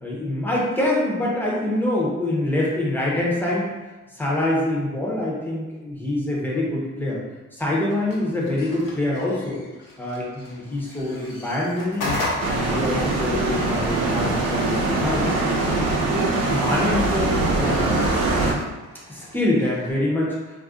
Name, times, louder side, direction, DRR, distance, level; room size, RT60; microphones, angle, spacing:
voice 1, 0.0-3.7 4.1-7.2 7.5-9.6 10.0-12.1 12.4-15.4 16.1-18.1 19.1-20.4, left 1 dB, 5° left, -4 dB, 0.5 m, -25 dB
sound 1, 7.9-19.9, left 2 dB, 80° left, 0.8 m, -36 dB
sound 2, 12.4-18.5, right 2 dB, 90° right, 0.6 m, -22 dB
2.4 x 2.1 x 3.6 m, 1.2 s
wide cardioid pair, 135°, 33 cm